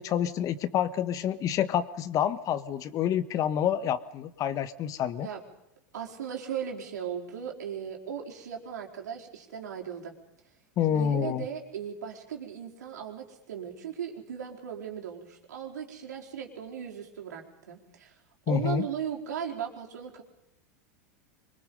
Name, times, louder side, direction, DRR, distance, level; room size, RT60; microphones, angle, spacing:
voice 1, 0.0-5.3 10.8-11.4 18.5-18.8, left 9 dB, 40° left, 14 dB, 1.4 m, -28 dB
voice 2, 5.9-10.1 10.9-18.1 18.5-20.2, right 8 dB, 85° right, 0 dB, 4.5 m, -37 dB
25.0 x 22.5 x 5.5 m, 0.81 s
hypercardioid pair, 105°, 9 cm